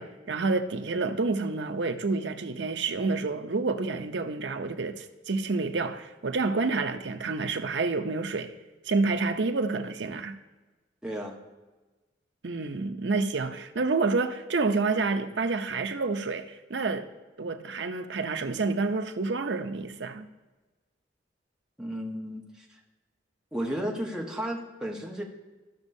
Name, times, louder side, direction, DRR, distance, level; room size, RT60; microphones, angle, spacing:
voice 1, 0.0-8.5 8.8-10.4 12.4-17.1 17.4-20.3, right 3 dB, 70° right, 0.7 m, -29 dB
voice 2, 11.0-11.4 21.8-22.6 23.5-25.2, equal, 5° right, 1.2 m, -33 dB
15.0 x 6.2 x 2.7 m
head